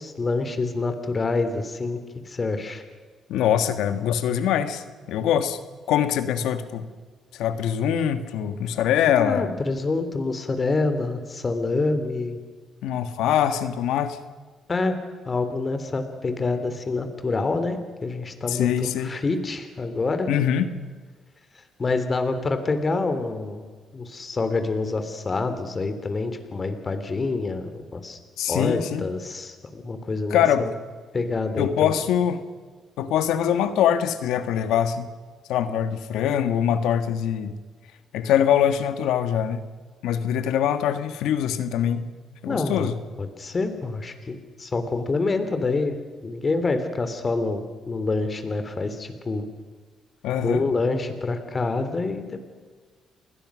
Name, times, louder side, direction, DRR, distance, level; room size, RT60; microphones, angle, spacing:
voice 1, 0.0-2.0 2.2-2.8 9.1-12.4 14.7-15.0 15.2-20.3 21.8-28.2 28.5-30.7 31.1-32.0 42.4-42.9 43.2-46.0 46.2-49.5 50.4-52.4, left 3 dB, 35° left, 9 dB, 3.3 m, -27 dB
voice 2, 3.3-5.6 5.9-6.9 7.3-9.5 12.8-14.2 18.5-19.1 20.3-20.7 28.4-29.0 30.3-30.7 31.6-32.4 33.0-35.1 35.5-37.5 38.1-39.6 40.0-42.0 42.4-43.0 50.2-50.7, left 9 dB, 90° left, 10 dB, 1.6 m, -23 dB
29.5 x 20.5 x 6.3 m, 1.5 s
cardioid pair, 90°, 0 cm